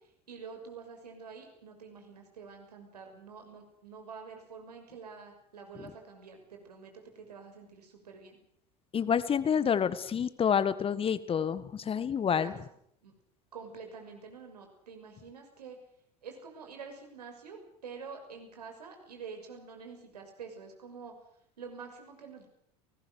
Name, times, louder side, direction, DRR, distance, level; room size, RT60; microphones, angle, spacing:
voice 1, 0.0-8.4 12.3-12.6 13.0-13.1 13.5-15.8 16.2-17.6 17.8-21.1 21.6-22.5, right 5 dB, 75° right, 4 dB, 6.3 m, -47 dB
voice 2, 8.9-12.5, left 7 dB, 25° left, 14 dB, 1.6 m, -28 dB
30.0 x 20.0 x 6.5 m, 0.68 s
figure-of-eight pair, 75°, 21 cm